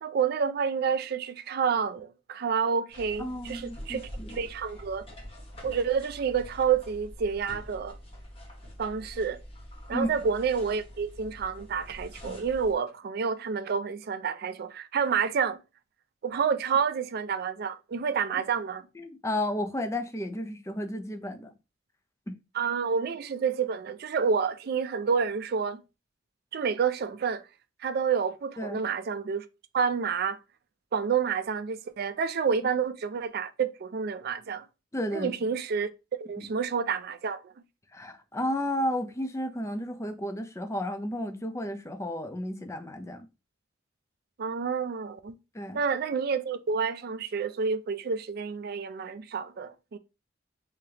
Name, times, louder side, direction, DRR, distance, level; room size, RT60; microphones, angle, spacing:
voice 1, 0.0-5.0 5.6-8.0 8.8-9.4 9.9-15.6 16.2-18.8 22.5-25.8 26.5-27.4 27.8-29.5 29.7-30.4 30.9-34.7 35.1-35.9 36.2-37.5 44.4-45.4 45.7-50.0, right 6 dB, 55° right, 0.4 m, -29 dB
sound 1, 2.9-12.7, equal, 30° left, 1.1 m, -45 dB
voice 2, 3.2-4.4 9.9-10.1 18.9-21.5 22.3-22.4 28.6-28.8 34.9-35.3 36.4-36.5 37.9-43.3 45.5-45.8, left 1 dB, 15° left, 0.5 m, -33 dB
3.5 x 3.3 x 2.8 m
head